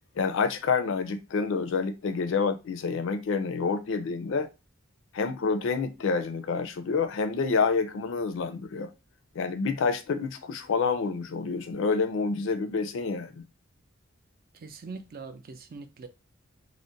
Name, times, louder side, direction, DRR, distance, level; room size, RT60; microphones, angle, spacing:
voice 1, 0.2-4.5 5.1-8.9 9.3-13.4, left 5 dB, 65° left, 0.4 m, -28 dB
voice 2, 14.5-16.1, right 4 dB, 45° right, 0.4 m, -42 dB
2.5 x 2.1 x 3.8 m
head